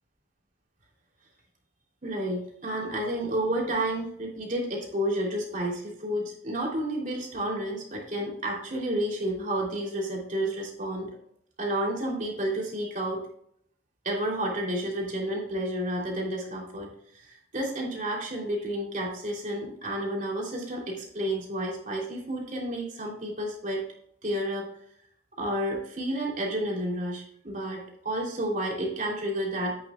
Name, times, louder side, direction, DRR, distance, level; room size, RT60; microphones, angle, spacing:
voice 1, 2.0-11.1 11.6-13.3 14.0-23.9 24.2-24.7 25.4-29.8, right 1 dB, 45° right, -1 dB, 3.0 m, -31 dB
11.0 x 8.7 x 2.3 m, 0.68 s
head